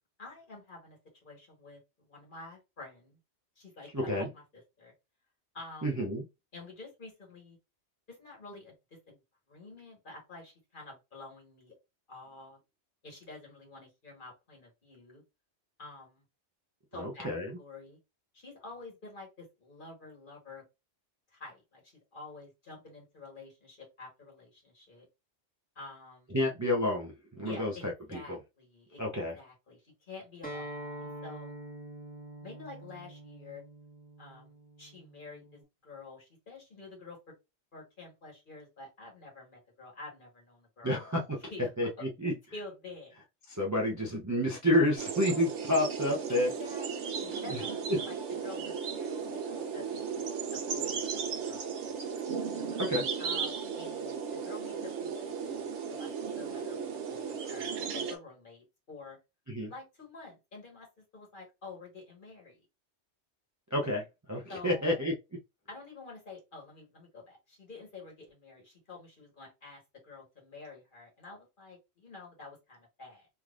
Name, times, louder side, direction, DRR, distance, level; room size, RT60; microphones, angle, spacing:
voice 1, 0.2-3.2 3.6-4.4 4.8-4.9 5.5-5.9 6.5-7.6 8.1-9.2 9.5-11.7 12.1-12.6 13.0-15.2 15.8-16.2 16.9-17.3 17.6-18.0 18.3-20.6 21.3-25.1 25.7-26.3 27.4-27.8 28.1-29.0 29.3-31.5 32.4-33.6 34.2-37.3 37.7-41.0 41.5-43.1 46.3-50.2 50.5-52.0 53.2-55.1 55.4-59.2 59.7-62.6 64.5-65.1 65.7-73.3, left 3 dB, 50° left, 0 dB, 1.6 m, -49 dB
voice 2, 3.9-4.3 5.8-6.2 17.0-17.6 26.3-28.4 29.0-29.4 40.8-41.4 41.8-42.3 43.5-46.5 47.3-47.6 47.9-48.0 52.8-53.1 59.5-59.7 63.7-65.1, left 1 dB, 20° right, -2 dB, 0.5 m, -30 dB
Acoustic guitar, 30.4-35.6, right 1 dB, 5° left, 1.3 m, -45 dB
sound 1, 45.0-58.2, right 6 dB, 85° right, 1.1 m, -35 dB
3.5 x 3.1 x 2.4 m, 0.24 s
omnidirectional pair, 1.2 m